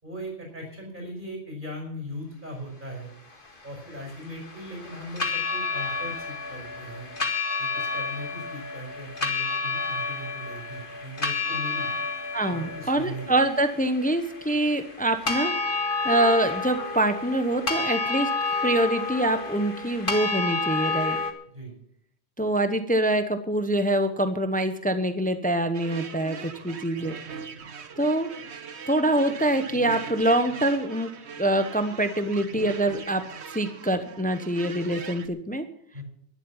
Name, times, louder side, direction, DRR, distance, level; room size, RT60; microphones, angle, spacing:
voice 1, 0.0-3.1 3.6-7.1 7.6-11.9 12.5-13.2 21.5-21.7 35.9-36.0, equal, 45° right, 1 dB, 5.4 m, -39 dB
sound 1, 3.3-21.3, left 4 dB, 50° left, 2.1 m, -30 dB
voice 2, 12.3-15.5 16.0-18.3 18.6-21.2 22.4-27.1 28.0-28.3 28.9-31.1 31.4-33.2 33.5-35.7, right 1 dB, 10° left, 9 dB, 0.9 m, -25 dB
sound 2, 25.7-35.3, right 5 dB, 70° right, 1.4 m, -40 dB
11.5 x 11.0 x 7.3 m, 0.70 s
omnidirectional pair, 1.2 m